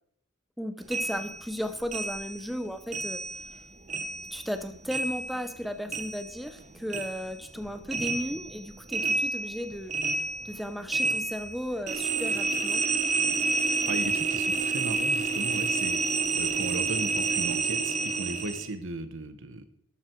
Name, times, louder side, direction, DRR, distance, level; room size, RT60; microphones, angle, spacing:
voice 1, 0.6-3.2 4.3-9.9 10.4-12.9, equal, ahead, 9 dB, 0.8 m, -35 dB
sound 1, 0.9-3.6 3.9-6.6 6.9-18.7, right 4 dB, 35° right, 1.0 m, -30 dB
voice 2, 13.5-19.7, right 2 dB, 60° right, 10 dB, 1.3 m, -37 dB
13.0 x 12.0 x 4.6 m, 0.68 s
head